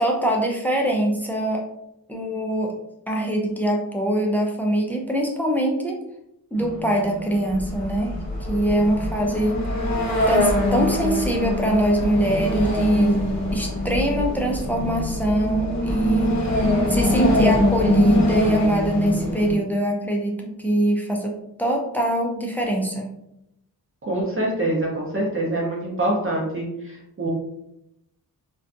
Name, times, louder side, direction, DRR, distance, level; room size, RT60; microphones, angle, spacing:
voice 1, 0.0-1.6 2.1-2.8 3.1-6.0 6.5-8.2 8.5-9.9 10.3-13.2 13.5-16.4 16.9-23.1, right 1 dB, 5° left, 0 dB, 0.4 m, -23 dB
sound 1, 6.6-19.6, left 1 dB, 50° left, 0.7 m, -23 dB
voice 2, 24.0-27.3, right 1 dB, 35° right, -3 dB, 0.6 m, -25 dB
2.5 x 2.2 x 2.5 m, 0.81 s
wide cardioid pair, 125°, 36 cm